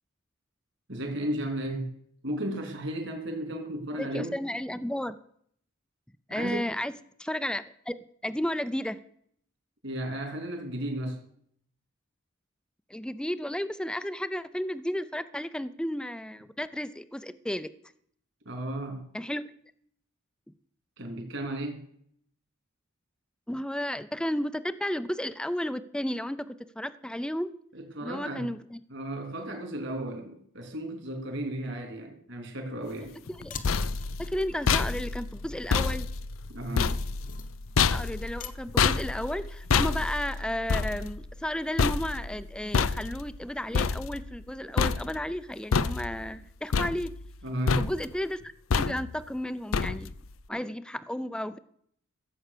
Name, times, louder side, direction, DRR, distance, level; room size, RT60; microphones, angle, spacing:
voice 1, 0.9-1.9 2.2-4.3 6.3-6.7 9.8-11.2 18.4-19.1 21.0-21.8 27.7-28.5 28.9-33.1 36.5-37.0 47.4-47.8, right 1 dB, 60° right, 3.4 m, -34 dB
voice 2, 4.0-5.2 6.3-6.9 7.2-8.0 8.2-9.0 12.9-17.7 19.1-19.4 23.5-27.5 28.0-28.8 33.4-33.6 34.2-36.1 37.9-47.1 47.8-50.1 50.5-51.6, equal, 5° left, 0.5 m, -33 dB
sound 1, 33.3-44.5 44.8-45.4 45.7-46.4 46.7-47.4 47.7-48.2 48.7-49.3 49.7-50.3, left 5 dB, 85° left, 0.6 m, -28 dB
sound 2, 33.3-39.5, left 4 dB, 40° left, 1.0 m, -47 dB
15.0 x 7.9 x 6.7 m
head